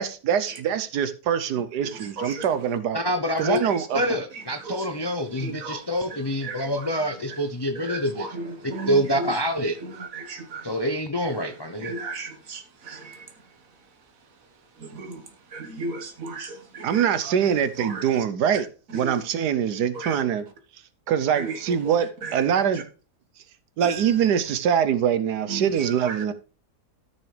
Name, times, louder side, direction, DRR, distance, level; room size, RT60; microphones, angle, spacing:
voice 1, 0.0-3.0 3.4-4.0 16.8-18.7 18.9-20.4 21.1-22.8 23.8-26.3, right 8 dB, 80° right, 1.3 m, -23 dB
voice 2, 1.8-2.5 3.3-3.9 4.3-4.9 5.4-5.8 6.1-6.9 7.3-7.4 7.8-9.4 9.8-10.7 11.8-13.3 14.8-17.3 17.8-18.1 18.9-19.1 19.9-20.2 21.3-21.9 22.2-22.5 22.7-22.8 23.8-24.1 25.5-26.2, right 3 dB, 55° right, 1.7 m, -36 dB
voice 3, 2.9-3.6 3.9-9.8 10.6-11.9, equal, 30° left, 0.4 m, -26 dB
13.5 x 6.0 x 3.3 m
omnidirectional pair, 1.8 m